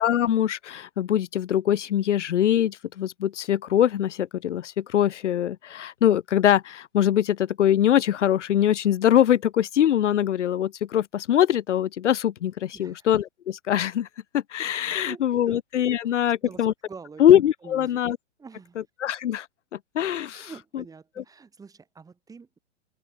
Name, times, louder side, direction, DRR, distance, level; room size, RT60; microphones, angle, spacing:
voice 1, 0.0-14.1 14.3-16.7 17.2-18.2 19.0-19.5 19.9-20.5, left 10 dB, 85° left, 0.6 m, -22 dB
voice 2, 12.7-13.1 14.9-15.6 15.9-17.3 17.6-18.0 18.4-18.8 20.3-22.6, right 5 dB, 10° right, 3.7 m, -46 dB
open air
hypercardioid pair, 130°, 35 cm